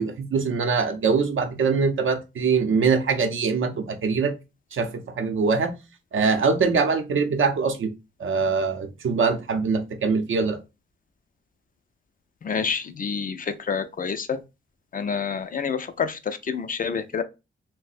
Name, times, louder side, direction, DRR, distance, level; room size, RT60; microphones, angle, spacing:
voice 1, 0.0-4.3 4.7-5.7 6.1-7.9 8.2-10.6, right 5 dB, 70° right, 0.6 m, -23 dB
voice 2, 12.4-14.4 14.9-17.2, left 6 dB, 40° left, 0.4 m, -28 dB
2.7 x 2.1 x 4.0 m
wide cardioid pair, 110°, 21 cm